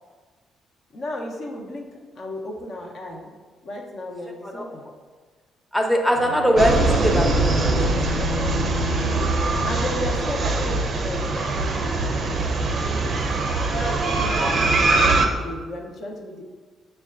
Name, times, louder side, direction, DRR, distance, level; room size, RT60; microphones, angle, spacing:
voice 1, 0.9-3.3 3.6-4.8 9.6-12.4 12.8-13.3 13.7-16.4, left 1 dB, 60° left, -1 dB, 0.6 m, -34 dB
voice 2, 5.7-8.3 9.0-9.5, equal, 5° left, 1 dB, 0.6 m, -23 dB
Bowed string instrument, 6.1-10.6, left 4 dB, 85° left, 0.9 m, -31 dB
sound 1, 6.6-15.3, right 3 dB, 50° right, 0.4 m, -22 dB
6.2 x 2.2 x 2.4 m, 1.4 s
hypercardioid pair, 45°, 0 cm